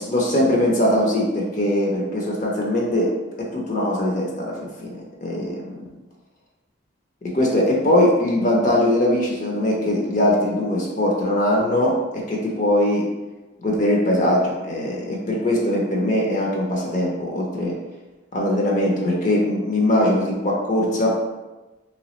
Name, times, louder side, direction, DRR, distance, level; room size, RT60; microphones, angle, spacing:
voice 1, 0.0-3.1 3.5-5.7 7.3-13.0 13.6-17.7 18.3-21.1, left 1 dB, 40° left, -2 dB, 0.6 m, -21 dB
3.1 x 3.0 x 3.0 m, 1.1 s
head